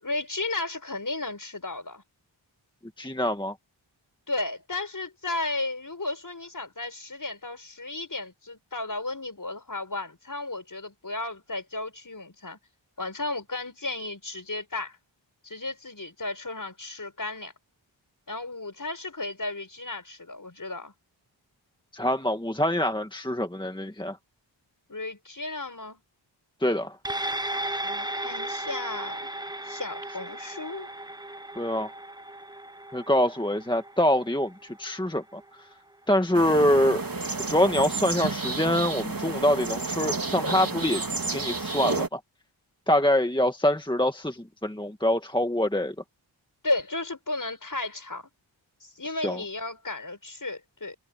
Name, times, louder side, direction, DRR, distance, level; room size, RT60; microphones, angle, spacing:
voice 1, 0.0-2.0 4.3-12.6 13.0-15.0 15.4-17.5 18.3-20.9 24.9-26.0 27.8-29.3 29.6-30.9 46.6-48.3 48.8-51.0, left 2 dB, 40° left, 6.8 m, -34 dB
voice 2, 3.0-3.6 21.9-24.2 26.6-27.0 31.6-31.9 32.9-35.7 36.1-37.0 37.5-41.0 41.3-42.2 42.9-46.0 49.0-49.4, left 1 dB, 10° left, 1.8 m, -25 dB
sound 1, 27.1-35.7 36.1-36.2, right 1 dB, 10° right, 1.1 m, -36 dB
sound 2, 36.3-42.1, right 3 dB, 45° right, 3.5 m, -30 dB
cardioid pair, 50°, 48 cm